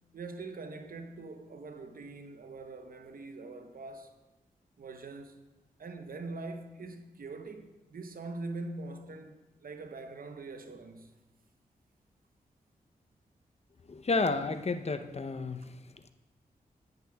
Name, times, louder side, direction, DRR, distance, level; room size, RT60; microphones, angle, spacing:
voice 1, 0.1-4.1 4.8-5.3 5.8-11.1, right 3 dB, 65° right, 0.8 m, -43 dB
voice 2, 13.9-15.7, left 3 dB, 40° left, 0.7 m, -31 dB
10.5 x 10.0 x 2.3 m
supercardioid pair, 40°, 16 cm